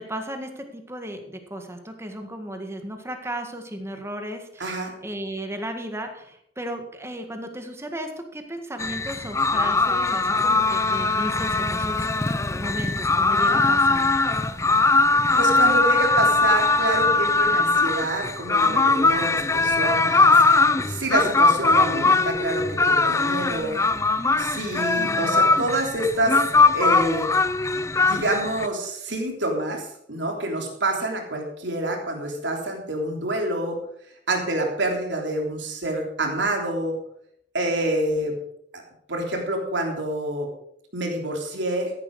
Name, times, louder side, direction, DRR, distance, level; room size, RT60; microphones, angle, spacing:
voice 1, 0.0-12.2 12.6-14.1 24.8-25.4, right 1 dB, 15° right, 5 dB, 1.8 m, -35 dB
voice 2, 4.6-4.9 15.4-20.4 20.8-23.8 24.4-26.4 26.7-27.3 28.0-33.8 34.3-36.9 37.5-38.3 38.7-38.8 39.1-40.5 40.9-41.9, right 1 dB, 80° right, 2 dB, 3.4 m, -27 dB
sound 1, 8.8-28.7, left 3 dB, 15° left, 0.5 m, -21 dB
14.0 x 11.0 x 4.9 m, 0.73 s
head